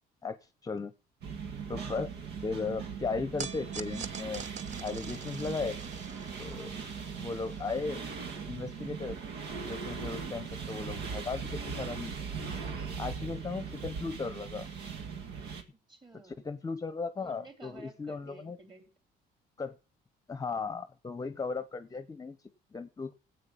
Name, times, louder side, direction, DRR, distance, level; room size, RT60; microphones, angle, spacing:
voice 1, 0.2-0.9 1.7-2.1 2.4-4.4 4.8-5.8 6.4-6.8 7.1-8.0 8.5-9.2 9.6-12.1 13.0-14.7 16.2-18.6 19.6-19.8 20.3-22.4 22.7-23.2, left 4 dB, 20° left, 13 dB, 0.8 m, -36 dB
sound 1, 1.2-15.6, right 6 dB, 75° right, 1.9 m, -39 dB
sound 2, 3.4-9.8, right 6 dB, 45° right, 1.0 m, -46 dB
voice 2, 6.5-6.8 12.6-13.0 13.3-13.5 15.7-16.4 17.2-18.9, right 3 dB, 30° right, 6 dB, 4.0 m, -53 dB
9.8 x 8.3 x 8.3 m, 0.35 s
cardioid pair, 110°, 17 cm